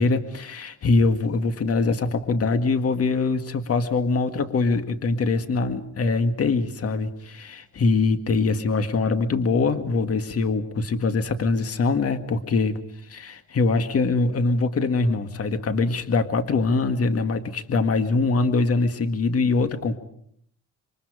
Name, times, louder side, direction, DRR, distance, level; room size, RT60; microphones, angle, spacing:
voice 1, 0.0-12.8 13.1-20.0, left 3 dB, 50° left, 9 dB, 2.0 m, -23 dB
27.5 x 23.5 x 5.0 m, 0.68 s
cardioid pair, 90°, 30 cm